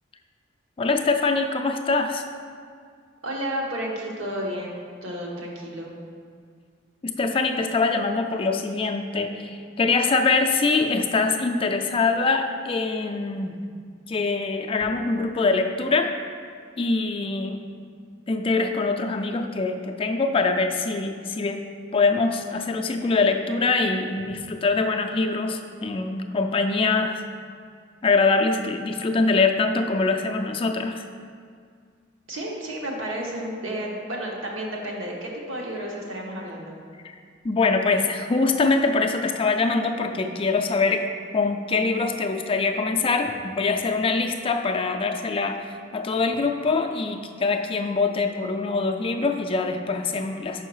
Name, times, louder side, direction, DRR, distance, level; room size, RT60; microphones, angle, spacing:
voice 1, 0.8-2.2 7.0-13.6 14.1-16.1 16.8-17.6 18.3-21.6 21.9-27.3 28.0-31.1 37.0-37.1 37.4-50.6, left 3 dB, 25° left, 5 dB, 0.3 m, -24 dB
voice 2, 3.2-5.9 32.3-36.7, right 1 dB, 85° right, -2 dB, 1.1 m, -32 dB
5.5 x 5.3 x 4.7 m, 2.1 s
head